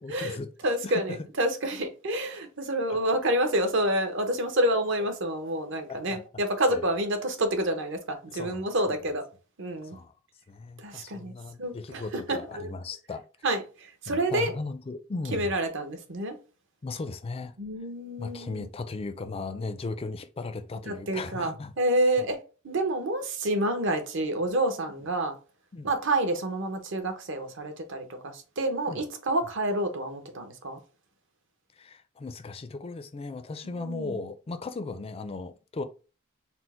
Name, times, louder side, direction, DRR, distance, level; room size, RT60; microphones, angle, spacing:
voice 1, 0.0-0.5 0.8-1.2 2.9-3.0 4.7-4.8 5.9-6.2 6.7-6.9 8.4-9.0 9.8-10.1 10.5-13.2 14.1-15.5 16.8-17.5 18.2-21.7 22.2-22.3 25.7-25.9 28.9-29.0 31.8-35.8, left 3 dB, 25° left, 0.4 m, -37 dB
voice 2, 0.6-9.2 9.6-10.0 10.8-11.3 11.6-12.7 13.4-14.5 15.3-16.4 17.6-18.7 20.9-22.4 22.6-25.4 25.8-30.8 33.6-34.1, right 1 dB, 60° right, 0.8 m, -28 dB
4.3 x 2.0 x 4.2 m
head